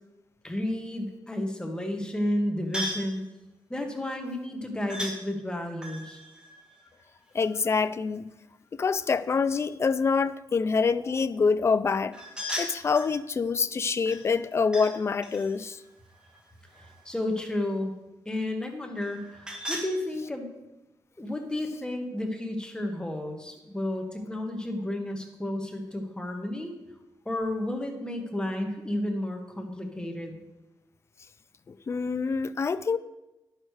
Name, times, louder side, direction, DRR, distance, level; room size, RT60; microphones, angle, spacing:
voice 1, 0.4-3.2 3.7-6.2 16.8-17.9 18.2-20.5 21.2-26.7 27.2-30.4, left 1 dB, 10° left, 1.3 m, -32 dB
sound 1, 2.7-3.1 4.9-5.2 5.8-7.6 12.1-13.2 14.1-14.9 15.2-17.1 19.0-19.9, equal, 10° right, 1.5 m, -37 dB
voice 2, 7.3-8.3 8.7-12.2 12.6-15.8 31.7-33.0, left 5 dB, 35° left, 0.4 m, -26 dB
10.5 x 6.5 x 4.8 m
wide cardioid pair, 135°, 8 cm